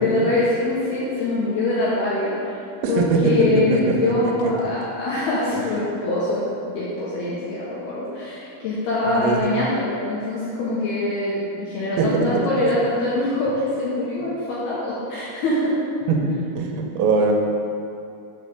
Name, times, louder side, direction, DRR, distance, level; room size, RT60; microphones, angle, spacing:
voice 1, 0.0-2.6 2.9-15.8, left 2 dB, 75° left, -8 dB, 2.5 m, -23 dB
voice 2, 12.0-12.5 16.1-17.3, right 4 dB, 90° right, 1 dB, 3.4 m, -22 dB
8.0 x 4.4 x 6.7 m, 2.6 s
omnidirectional pair, 5.9 m